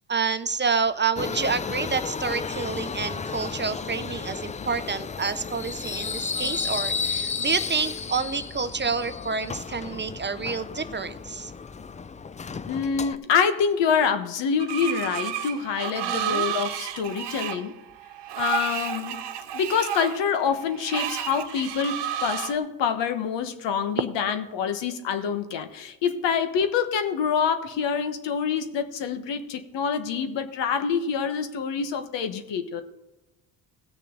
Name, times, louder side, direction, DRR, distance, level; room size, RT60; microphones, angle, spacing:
voice 1, 0.1-11.5 15.9-16.5, right 5 dB, 25° right, 11 dB, 0.6 m, -28 dB
Subway metro underground, 1.2-13.2, left 5 dB, 20° left, 0.4 m, -33 dB
voice 2, 12.7-17.7 18.4-19.2 19.5-32.8, left 6 dB, 75° left, 8 dB, 1.2 m, -26 dB
Screech, 14.6-22.6, right 10 dB, 65° right, 1.1 m, -31 dB
17.0 x 6.6 x 3.9 m, 1.0 s
supercardioid pair, 70°, 44 cm